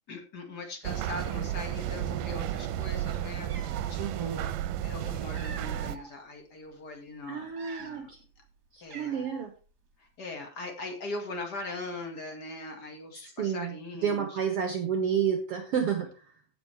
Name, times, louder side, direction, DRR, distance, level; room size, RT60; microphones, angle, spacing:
voice 1, 0.1-4.5 4.8-7.5 7.8-8.1 8.8-9.3 10.0-14.4, left 2 dB, 35° left, 3 dB, 1.9 m, -41 dB
sound 1, 0.8-6.0, right 11 dB, 80° right, 2.2 m, -33 dB
Cat, 3.4-4.0 4.9-6.1 6.7-6.8 7.4-8.2 8.5-8.6 8.9-9.5, right 6 dB, 40° right, 1.7 m, -46 dB
voice 2, 4.0-4.4 7.3-8.2 8.7-9.5 13.4-13.8 14.0-16.1, right 7 dB, 65° right, 5 dB, 1.5 m, -30 dB
15.5 x 6.3 x 3.4 m, 0.36 s
omnidirectional pair, 3.9 m